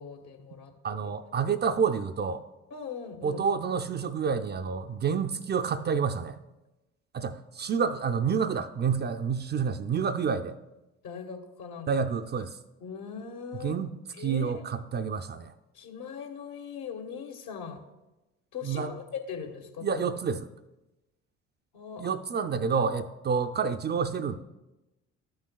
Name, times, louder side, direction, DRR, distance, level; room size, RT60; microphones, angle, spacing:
voice 1, 0.0-1.1 2.7-3.4 11.0-11.9 12.8-13.8 14.2-14.6 15.7-17.8 18.5-20.0 21.7-22.1 22.7-23.0, left 6 dB, 60° left, 2 dB, 1.5 m, -40 dB
voice 2, 0.8-2.4 3.2-6.4 7.1-10.6 11.9-12.6 13.5-15.5 18.6-18.9 19.8-20.5 22.0-24.4, right 6 dB, 30° right, 7 dB, 0.5 m, -29 dB
13.0 x 6.4 x 2.3 m, 1.0 s
hypercardioid pair, 55°, 35 cm